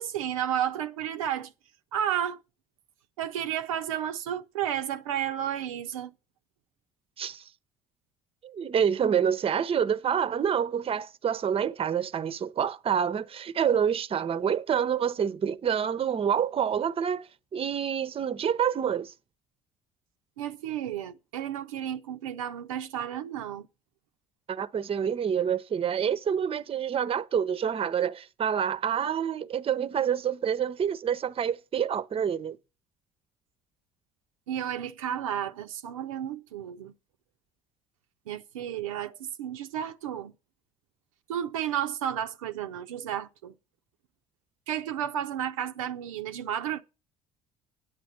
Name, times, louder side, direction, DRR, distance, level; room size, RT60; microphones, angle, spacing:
voice 1, 0.0-1.5 1.9-2.4 3.2-6.1 20.4-23.7 34.5-36.9 38.3-40.3 41.3-43.5 44.7-46.8, right 10 dB, 80° right, 0.5 m, -32 dB
voice 2, 8.4-17.3 17.5-19.1 24.5-32.6, right 8 dB, 35° right, 0.6 m, -27 dB
9.3 x 7.5 x 6.4 m
hypercardioid pair, 55°, 17 cm